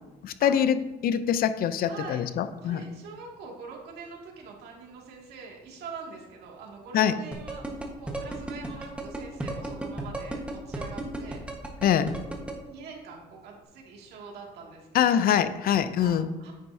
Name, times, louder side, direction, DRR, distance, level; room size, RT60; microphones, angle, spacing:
voice 1, 0.2-2.8 6.9-7.2 11.8-12.1 14.9-16.3, left 9 dB, 60° left, 13 dB, 0.6 m, -24 dB
voice 2, 1.8-2.2 2.6-11.4 12.6-15.3 16.0-16.5, right 5 dB, 75° right, -1 dB, 2.3 m, -44 dB
sound 1, 7.3-12.5, right 2 dB, 5° right, 1.4 m, -33 dB
9.4 x 8.9 x 2.8 m, 1.1 s
cardioid pair, 110°, 17 cm